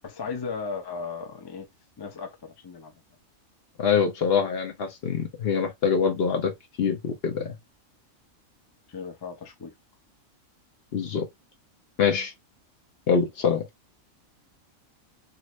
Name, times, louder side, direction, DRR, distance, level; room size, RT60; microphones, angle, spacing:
voice 1, 0.0-1.7 2.0-3.0 8.9-9.7, left 5 dB, 35° left, 0.4 m, -36 dB
voice 2, 3.8-7.5 10.9-11.3 12.0-12.3 13.1-13.7, left 6 dB, 55° left, 0.9 m, -24 dB
2.9 x 2.5 x 3.0 m
omnidirectional pair, 1.4 m